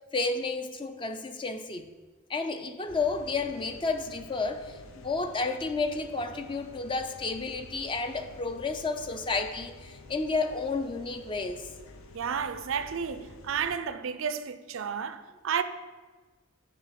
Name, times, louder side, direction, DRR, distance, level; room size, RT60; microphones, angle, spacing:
voice 1, 0.1-1.9 2.3-11.7, left 3 dB, 25° left, 0.4 m, -31 dB
sound 1, 2.9-13.8, left 2 dB, 70° left, 0.6 m, -49 dB
voice 2, 12.1-15.6, right 7 dB, 65° right, 0.4 m, -32 dB
8.2 x 4.8 x 5.7 m
head